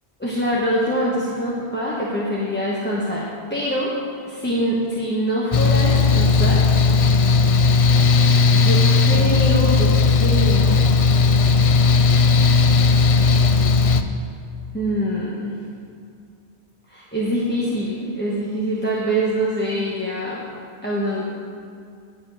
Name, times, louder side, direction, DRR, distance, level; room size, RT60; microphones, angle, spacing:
voice 1, 0.2-3.9 4.3-6.7 8.5-10.8 14.7-15.5 16.9-20.4 20.8-21.2, equal, 10° left, -6 dB, 1.1 m, -24 dB
Mechanical fan, 5.5-14.0, left 4 dB, 55° left, 0.4 m, -16 dB
10.0 x 5.6 x 7.4 m, 2.3 s
omnidirectional pair, 1.1 m